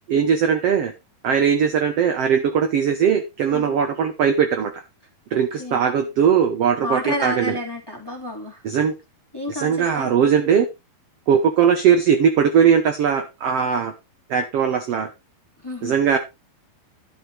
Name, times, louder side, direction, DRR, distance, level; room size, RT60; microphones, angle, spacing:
voice 1, 0.1-0.9 1.2-4.7 5.3-7.5 8.6-8.9 9.5-10.6 11.3-13.9 14.3-15.1 15.8-16.2, right 7 dB, 75° right, 7 dB, 1.4 m, -19 dB
voice 2, 5.3-5.8 6.8-8.6 9.3-10.1 15.6-15.9, left 1 dB, 10° left, 1 dB, 1.9 m, -30 dB
12.0 x 6.4 x 4.7 m, 0.25 s
omnidirectional pair, 4.4 m